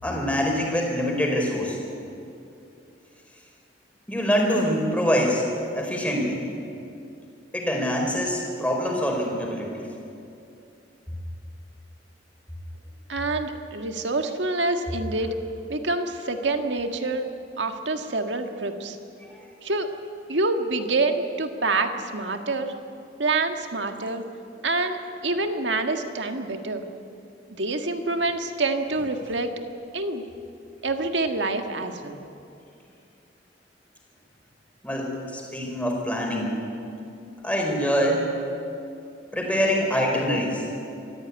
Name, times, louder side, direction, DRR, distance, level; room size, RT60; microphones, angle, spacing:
voice 1, 0.0-1.8 4.1-5.4 5.7-6.4 7.5-9.9 19.3-19.4 34.8-36.6 37.4-38.3 39.3-40.7, equal, 10° left, -1 dB, 4.7 m, -25 dB
voice 2, 13.1-15.3 15.7-17.3 17.6-19.0 19.6-19.9 20.3-22.7 23.2-24.2 24.6-25.0 25.2-26.9 27.5-29.5 29.9-30.2 30.8-32.2, right 3 dB, 80° right, 6 dB, 1.7 m, -26 dB
25.5 x 15.0 x 9.7 m, 2.6 s
head